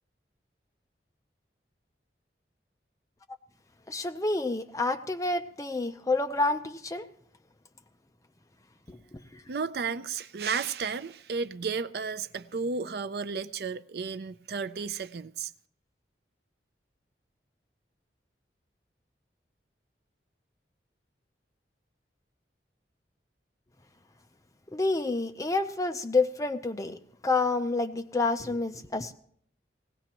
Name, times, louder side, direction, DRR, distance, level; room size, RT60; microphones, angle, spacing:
voice 1, 3.9-7.1 8.9-9.4 24.7-27.0 27.2-29.1, left 3 dB, 20° left, 0.6 m, -29 dB
voice 2, 9.5-15.5, right 5 dB, 60° right, 0.4 m, -33 dB
19.5 x 17.0 x 3.0 m
head